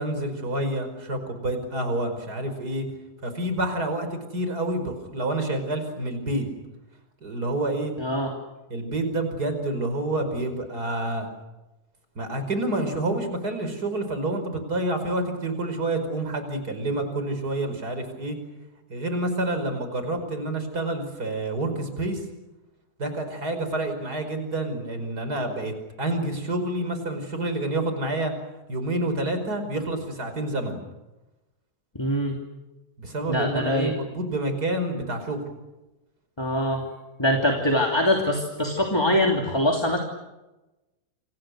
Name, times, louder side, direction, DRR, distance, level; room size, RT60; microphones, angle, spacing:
voice 1, 0.0-2.9 3.2-6.5 7.2-7.9 8.7-11.3 12.2-18.4 18.9-22.3 23.0-25.7 26.0-28.3 28.7-30.8 33.0-35.4, right 1 dB, 30° right, 7 dB, 5.5 m, -28 dB
voice 2, 8.0-8.3 31.9-32.4 33.3-33.9 36.4-36.8 37.2-40.0, left 1 dB, 10° left, 1 dB, 2.6 m, -23 dB
29.5 x 26.5 x 6.5 m, 1.0 s
omnidirectional pair, 3.4 m